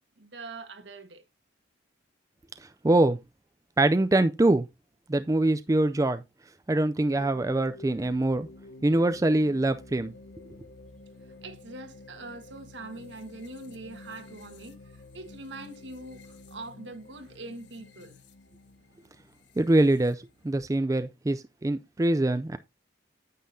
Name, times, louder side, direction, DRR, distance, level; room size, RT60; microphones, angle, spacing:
voice 1, 0.2-1.2 11.4-18.2, right 2 dB, 75° right, 1.6 m, -43 dB
voice 2, 2.6-3.2 3.8-4.7 5.1-6.2 6.7-8.5 8.8-10.1 19.6-22.6, right 2 dB, 20° right, 0.4 m, -24 dB
sound 1, 7.1-20.6, left 2 dB, 70° left, 1.1 m, -50 dB
9.3 x 8.4 x 2.7 m
head